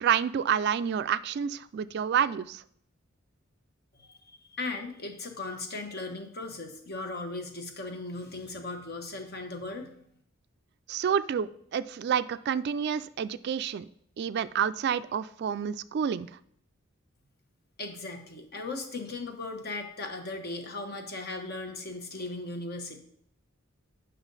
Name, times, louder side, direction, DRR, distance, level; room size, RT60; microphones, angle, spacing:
voice 1, 0.0-2.6 10.9-13.9 14.2-16.3, right 8 dB, 55° right, 14 dB, 0.3 m, -29 dB
voice 2, 3.9-9.9 17.8-23.0, left 2 dB, 50° left, 4 dB, 1.2 m, -37 dB
8.9 x 5.7 x 4.0 m, 0.65 s
head